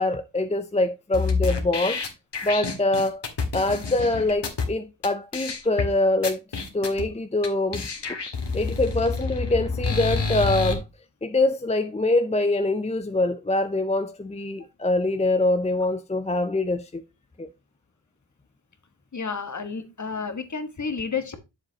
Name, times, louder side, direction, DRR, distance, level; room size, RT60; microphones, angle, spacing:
voice 1, 0.0-2.0 2.4-3.3 3.5-6.4 6.7-7.8 8.5-10.8 11.2-17.0 17.4-17.5, left 2 dB, 15° left, 0.5 m, -24 dB
sound 1, 1.1-4.7 5.0-5.1 5.3-5.9 6.2-7.0 7.4-7.5 7.7-10.7, left 4 dB, 65° left, 2.0 m, -28 dB
voice 2, 19.1-21.4, left 5 dB, 40° left, 1.5 m, -31 dB
7.8 x 7.4 x 2.8 m
wide cardioid pair, 90°, 44 cm